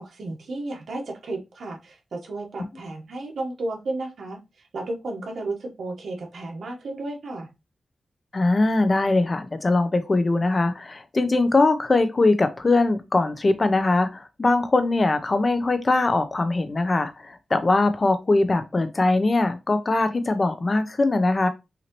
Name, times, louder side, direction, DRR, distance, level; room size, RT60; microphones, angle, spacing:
voice 1, 0.0-7.5, right 2 dB, 75° right, 1.3 m, -33 dB
voice 2, 8.3-21.5, left 2 dB, 35° left, 0.7 m, -21 dB
5.8 x 2.8 x 3.0 m
wide cardioid pair, 115°, 0 cm